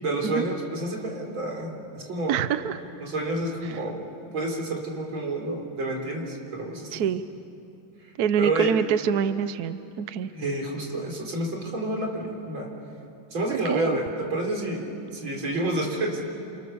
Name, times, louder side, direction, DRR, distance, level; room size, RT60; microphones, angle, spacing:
voice 1, 0.0-2.4 3.0-4.0 4.3-7.0 8.4-8.7 10.3-12.7 13.3-16.2, right 1 dB, 80° right, 1 dB, 4.9 m, -29 dB
voice 2, 2.3-2.8 6.9-7.2 8.2-10.3 13.5-14.0, right 8 dB, 60° right, 12 dB, 1.1 m, -25 dB
29.0 x 29.0 x 7.0 m, 2.7 s
omnidirectional pair, 2.2 m